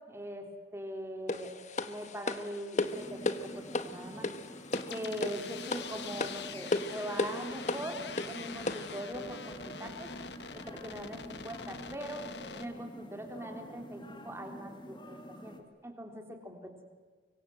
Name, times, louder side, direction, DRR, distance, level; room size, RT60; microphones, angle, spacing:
voice 1, 0.1-1.6 1.8-4.3 4.9-8.0 8.3-10.1 10.7-12.2 12.5-15.6 15.8-16.8, equal, 15° right, 4 dB, 3.5 m, -41 dB
sound 1, 1.3-9.0, left 2 dB, 45° left, 1.4 m, -35 dB
sound 2, 2.8-15.6, equal, 25° left, 2.4 m, -47 dB
sound 3, 4.7-12.7, left 5 dB, 75° left, 1.5 m, -44 dB
25.0 x 24.0 x 7.8 m, 1.5 s
head